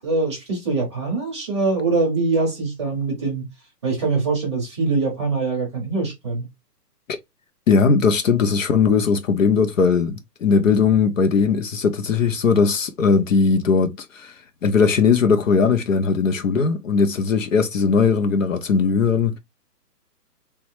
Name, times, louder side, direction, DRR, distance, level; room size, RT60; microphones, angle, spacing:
voice 1, 0.0-3.4 3.8-6.5, right 3 dB, 20° right, 0.7 m, -23 dB
voice 2, 7.7-14.3 14.6-19.4, left 5 dB, 55° left, 0.5 m, -19 dB
3.1 x 2.2 x 3.0 m
hypercardioid pair, 165°, 49 cm